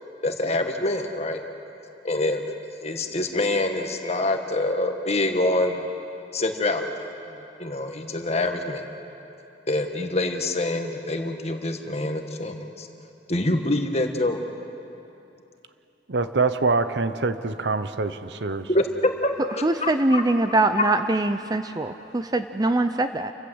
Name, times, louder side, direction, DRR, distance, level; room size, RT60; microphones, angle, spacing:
voice 1, 0.2-1.4 2.0-2.4 2.8-5.8 6.3-6.9 7.6-8.8 9.7-12.9 13.3-14.4 18.7-20.2, left 2 dB, 40° left, 5 dB, 1.6 m, -25 dB
voice 2, 16.1-18.7, right 3 dB, 75° right, 11 dB, 0.9 m, -25 dB
voice 3, 19.6-23.3, right 2 dB, 20° right, 9 dB, 0.6 m, -23 dB
29.0 x 15.0 x 8.0 m, 2.8 s
head